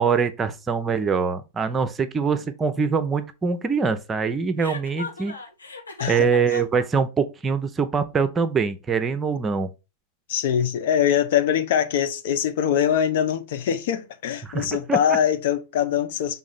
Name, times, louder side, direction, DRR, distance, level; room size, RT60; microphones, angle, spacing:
voice 1, 0.0-5.3 6.1-9.7 14.4-15.2, right 5 dB, 20° right, 0.8 m, -24 dB
Chuckle chortle, 4.6-6.8, left 3 dB, 80° left, 1.4 m, -36 dB
voice 2, 10.3-16.4, left 9 dB, 55° left, 0.7 m, -23 dB
6.1 x 3.9 x 4.3 m
figure-of-eight pair, 90°, 0 cm